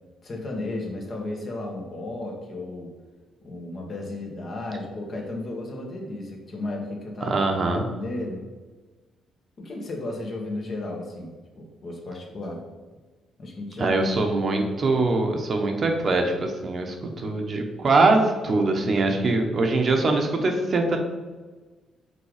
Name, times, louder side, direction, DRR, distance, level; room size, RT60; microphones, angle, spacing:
voice 1, 0.2-2.9 3.4-7.4 7.7-8.4 9.6-12.6 13.4-13.9, left 2 dB, 45° left, 0 dB, 1.5 m, -34 dB
voice 2, 7.2-7.8 13.8-21.0, right 2 dB, 45° right, 3 dB, 1.0 m, -23 dB
5.6 x 3.8 x 4.9 m, 1.3 s
cardioid pair, 90°, 0 cm